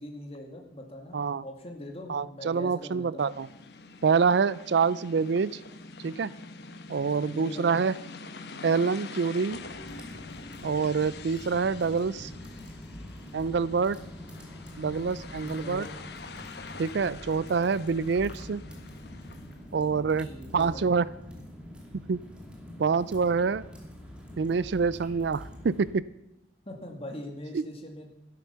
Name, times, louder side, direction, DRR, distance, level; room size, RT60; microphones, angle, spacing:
voice 1, 0.0-3.3 7.3-7.7 15.4-16.0 20.2-20.9 26.7-28.1, left 1 dB, 30° left, 3 dB, 2.3 m, -42 dB
voice 2, 1.1-1.4 2.1-3.5 4.0-5.6 6.0-6.3 6.9-8.0 8.6-9.6 10.6-12.3 13.3-14.0 14.8-15.9 16.8-18.6 19.7-20.3 20.5-21.1 22.1-22.2 22.8-23.6 24.4-26.0 27.5-27.6, right 5 dB, 65° right, 19 dB, 0.4 m, -26 dB
sound 1, 3.2-19.6, left 3 dB, 60° left, 1.1 m, -45 dB
sound 2, 9.5-25.9, left 1 dB, 5° right, 2.5 m, -45 dB
13.0 x 11.0 x 6.9 m, 0.85 s
head